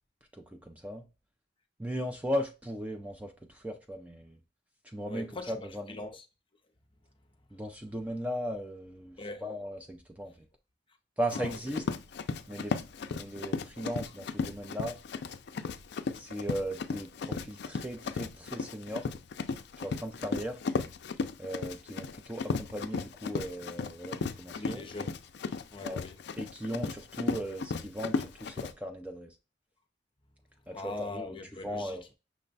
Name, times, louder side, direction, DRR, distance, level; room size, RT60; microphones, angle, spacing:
voice 1, 0.3-1.0 1.8-4.4 4.8-5.8 7.5-9.2 9.4-10.3 11.2-11.8 12.5-12.7 13.1-15.0 16.2-19.1 19.8-20.6 21.4-24.8 25.8-26.0 26.4-29.3 30.7-31.3 31.6-32.0, equal, 10° right, 0.5 m, -37 dB
voice 2, 5.1-5.6 5.9-6.3 9.2-9.5 11.3-11.5 24.5-25.2 25.7-26.2 30.7-32.0, left 2 dB, 30° left, 0.7 m, -41 dB
Run, 11.3-28.7, left 4 dB, 65° left, 0.4 m, -35 dB
5.9 x 2.2 x 3.9 m
head